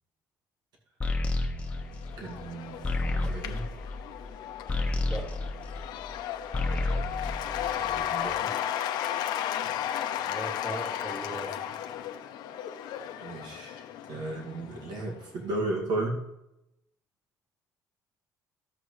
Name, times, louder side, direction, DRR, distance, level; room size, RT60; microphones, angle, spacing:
sound 1, 1.0-6.2 6.5-8.2, left 2 dB, 20° left, 1.3 m, -31 dB
Cheering / Applause / Crowd, 1.7-15.1, left 10 dB, 85° left, 0.8 m, -35 dB
voice 1, 2.2-3.6 7.7-8.5 13.2-16.2, right 2 dB, 75° right, 0 dB, 2.2 m, -35 dB
voice 2, 10.1-11.7, equal, 10° right, -2 dB, 3.0 m, -38 dB
12.5 x 8.2 x 3.2 m, 0.87 s
cardioid pair, 120°, 7 cm